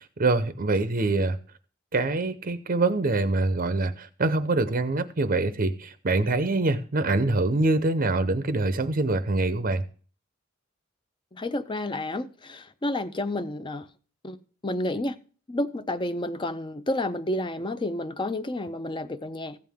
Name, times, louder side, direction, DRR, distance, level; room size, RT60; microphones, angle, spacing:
voice 1, 0.0-1.4 1.9-9.8, right 2 dB, 45° right, 0.7 m, -25 dB
voice 2, 11.3-13.9 14.2-14.4 14.6-15.2 15.5-19.6, left 1 dB, 25° left, 0.6 m, -30 dB
15.0 x 9.2 x 3.6 m
head